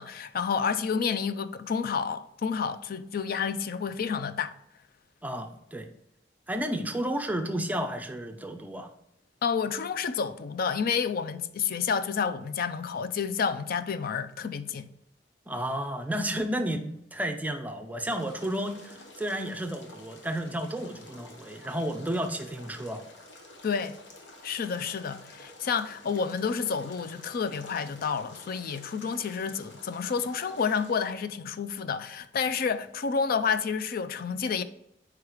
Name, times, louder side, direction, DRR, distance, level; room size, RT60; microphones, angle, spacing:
voice 1, 0.0-4.5 9.4-14.9 23.6-24.0 24.4-34.6, left 6 dB, 55° left, 0.4 m, -30 dB
voice 2, 5.2-5.9 6.5-8.9 15.5-23.0, right 1 dB, 10° right, 0.5 m, -32 dB
sound 1, 18.1-31.1, left 1 dB, 85° left, 1.2 m, -50 dB
4.8 x 4.7 x 4.9 m
head